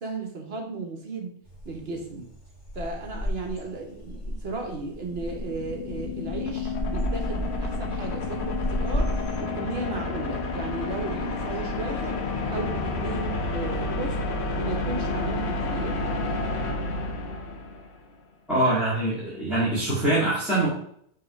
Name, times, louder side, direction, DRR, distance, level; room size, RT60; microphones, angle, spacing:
voice 1, 0.0-1.4 1.6-2.3 2.7-9.1 9.4-14.2 14.5-16.4, right 3 dB, 65° right, 2 dB, 1.3 m, -35 dB
sound 1, 1.4-9.4, equal, 45° left, 1.4 m, -33 dB
sound 2, 4.8-18.0, left 3 dB, 75° left, 1.1 m, -30 dB
voice 2, 18.5-20.7, right 1 dB, ahead, -11 dB, 2.0 m, -24 dB
5.6 x 3.3 x 5.1 m, 0.67 s
omnidirectional pair, 1.1 m